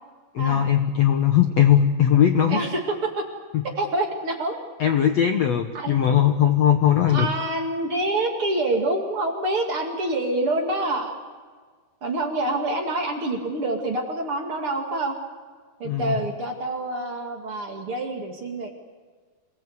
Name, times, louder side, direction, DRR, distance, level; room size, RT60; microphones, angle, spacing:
voice 1, 0.3-2.6 3.5-3.6 4.8-7.3 15.8-16.1, left 10 dB, 85° left, 6 dB, 1.5 m, -19 dB
voice 2, 2.5-3.2 3.8-4.6 5.7-6.0 7.1-11.1 12.0-15.1 15.8-18.7, right 2 dB, 40° right, 1 dB, 2.8 m, -26 dB
27.0 x 18.5 x 8.3 m, 1.5 s
omnidirectional pair, 4.7 m